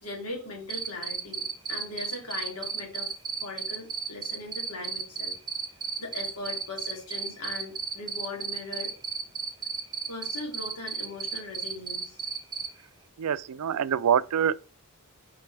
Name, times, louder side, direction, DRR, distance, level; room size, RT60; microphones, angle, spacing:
voice 1, 0.0-3.1 3.4-5.3 6.0-8.9 10.1-12.3, left 2 dB, 75° left, 2.7 m, -39 dB
Cricket, 0.7-12.7, right 6 dB, 20° right, 0.7 m, -33 dB
voice 2, 13.2-14.5, right 8 dB, 90° right, 0.4 m, -25 dB
6.8 x 4.9 x 3.3 m
head